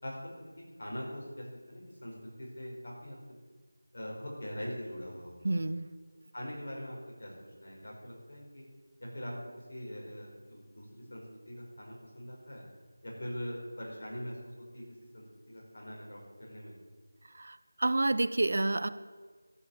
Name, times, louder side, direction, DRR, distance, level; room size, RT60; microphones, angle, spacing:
voice 1, 0.0-0.5 0.8-3.2 3.9-5.6 6.3-8.6 9.0-9.3 9.7-12.6 13.0-14.8 15.1-16.7, equal, 55° left, -2 dB, 5.2 m, -42 dB
voice 2, 5.4-5.9 17.4-18.9, right 2 dB, 55° right, 14 dB, 0.6 m, -29 dB
12.5 x 7.5 x 8.6 m, 1.4 s
figure-of-eight pair, 170°, 0 cm